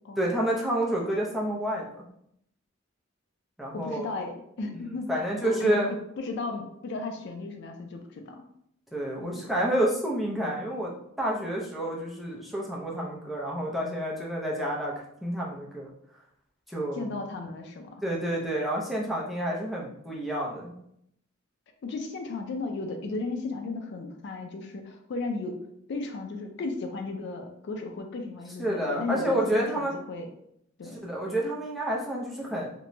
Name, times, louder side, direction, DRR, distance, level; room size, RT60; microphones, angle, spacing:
voice 1, 0.2-2.0 3.6-4.0 4.7-4.8 5.1-5.9 8.9-10.9 11.2-14.9 15.2-15.9 16.7-17.1 18.0-20.8 28.6-29.9 31.0-32.7, right 1 dB, ahead, -4 dB, 0.5 m, -29 dB
voice 2, 3.7-5.1 5.4-8.5 9.2-9.5 16.9-18.0 21.8-25.6 25.9-30.3 30.8-31.0, left 3 dB, 60° left, 4 dB, 0.3 m, -35 dB
2.9 x 2.2 x 2.6 m, 0.73 s
head